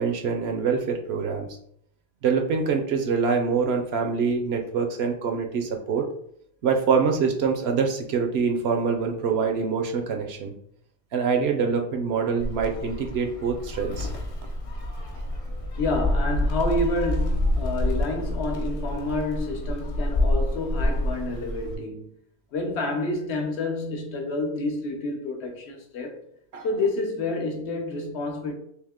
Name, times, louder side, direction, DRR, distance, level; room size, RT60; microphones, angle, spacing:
voice 1, 0.0-1.5 2.2-6.1 6.6-10.5 11.1-14.1 15.1-15.2 26.5-26.7, right 5 dB, 65° right, 0.8 m, -25 dB
Gull seagull, 12.4-21.7, left 1 dB, 40° left, 0.5 m, -27 dB
voice 2, 15.8-22.1 22.5-26.1 26.6-28.5, left 2 dB, 65° left, 1.0 m, -29 dB
3.4 x 2.8 x 3.6 m
omnidirectional pair, 1.2 m